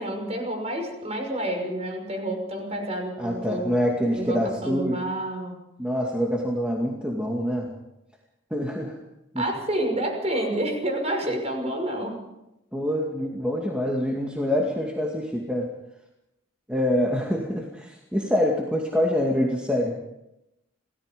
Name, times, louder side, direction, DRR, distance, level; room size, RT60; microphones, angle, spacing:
voice 1, 0.0-3.8 4.1-5.6 9.4-12.1, right 1 dB, 30° right, 3 dB, 6.0 m, -29 dB
voice 2, 3.2-5.0 5.8-7.7 8.5-9.0 9.3-9.5 12.7-15.7 16.7-20.0, equal, 5° right, -2 dB, 2.3 m, -25 dB
28.0 x 18.0 x 5.3 m, 0.87 s
head